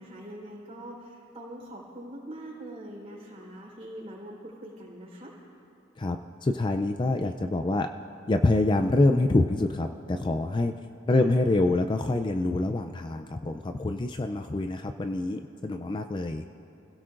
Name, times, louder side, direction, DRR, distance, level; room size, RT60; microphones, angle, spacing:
voice 1, 0.0-5.3 11.1-11.3, right 1 dB, 30° right, -4 dB, 4.1 m, -43 dB
voice 2, 6.0-7.9 8.3-10.7 11.1-16.4, left 2 dB, 25° left, 6 dB, 0.4 m, -26 dB
29.5 x 16.5 x 2.6 m, 2.9 s
head